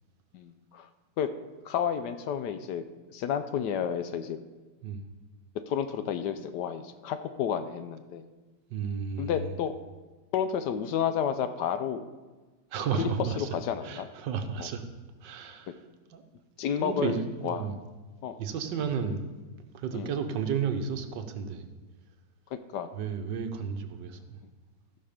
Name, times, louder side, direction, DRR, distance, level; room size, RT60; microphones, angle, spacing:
voice 1, 0.3-0.9 1.2-1.3 1.6-2.8 3.1-4.4 5.7-8.2 9.2-9.7 10.3-12.0 12.9-13.1 13.4-14.1 14.6-14.7 16.6-17.7 18.2-18.4 19.9-20.1 22.5-22.9, left 8 dB, 75° left, 10 dB, 1.2 m, -31 dB
voice 2, 8.7-9.5 12.7-13.5 13.8-14.8 15.2-15.8 16.1-16.2 16.8-17.7 18.4-19.2 19.7-21.7 22.9-24.4, right 6 dB, 75° right, 7 dB, 1.5 m, -32 dB
15.0 x 5.6 x 5.1 m, 1.3 s
omnidirectional pair, 2.0 m